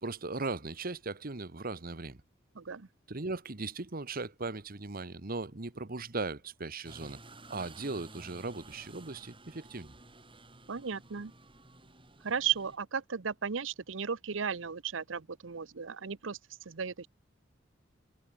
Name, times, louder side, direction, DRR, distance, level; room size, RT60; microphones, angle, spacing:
voice 1, 0.0-2.2 3.1-7.2 7.5-9.9, right 3 dB, 50° right, 1.4 m, -38 dB
voice 2, 2.6-2.9 10.7-11.3 12.2-16.4 16.7-17.1, right 7 dB, 85° right, 0.8 m, -35 dB
sound 1, 6.8-12.8, right 2 dB, 25° right, 5.9 m, -53 dB
head